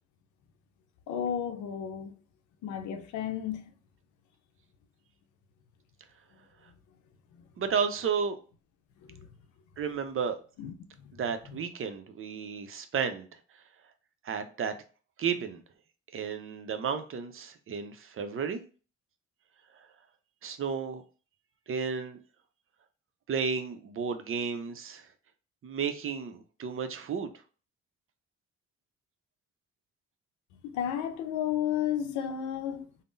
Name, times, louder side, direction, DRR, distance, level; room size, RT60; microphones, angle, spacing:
voice 1, 1.1-2.1 2.6-3.6 9.1-9.3 10.6-11.1 11.5-11.6 30.7-33.0, left 9 dB, 85° left, 0.5 m, -33 dB
voice 2, 7.6-8.4 9.8-10.4 11.2-13.3 14.2-14.7 15.2-15.6 16.1-18.6 20.4-21.0 21.7-22.2 23.3-25.0 25.6-27.3, right 6 dB, 45° right, 0.6 m, -32 dB
3.5 x 2.0 x 2.5 m
supercardioid pair, 60°, 29 cm